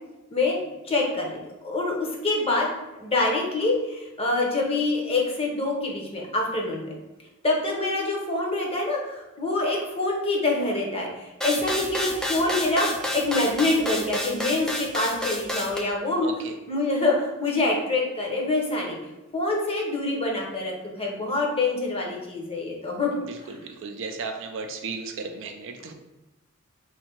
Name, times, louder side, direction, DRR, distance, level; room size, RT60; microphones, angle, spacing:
voice 1, 0.3-2.7 3.0-6.9 7.4-16.3 16.7-19.0 19.3-23.1 23.5-23.6, left 2 dB, 25° left, -1 dB, 0.8 m, -26 dB
sound 1, 11.4-15.8, left 1 dB, 5° left, 0.4 m, -29 dB
voice 2, 16.2-16.5 23.3-25.9, right 4 dB, 60° right, 5 dB, 0.5 m, -35 dB
3.2 x 2.7 x 4.4 m, 1.0 s
head